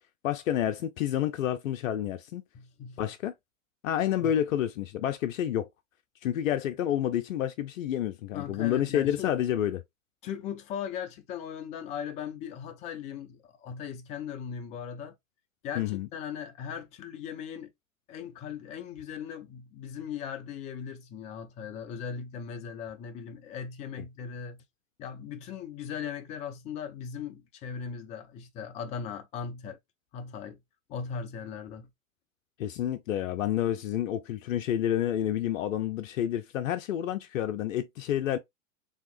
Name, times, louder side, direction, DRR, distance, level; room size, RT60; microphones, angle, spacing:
voice 1, 0.2-2.4 3.0-3.3 3.8-5.7 6.2-9.8 15.8-16.1 24.0-24.1 32.6-38.4, left 11 dB, 70° left, 0.5 m, -29 dB
voice 2, 2.5-3.0 4.2-4.3 8.3-9.3 10.2-15.1 15.6-17.7 18.1-24.6 25.0-29.8 30.1-30.6 30.9-31.9, left 7 dB, 20° left, 0.4 m, -38 dB
3.5 x 2.8 x 2.3 m
hypercardioid pair, 105°, 41 cm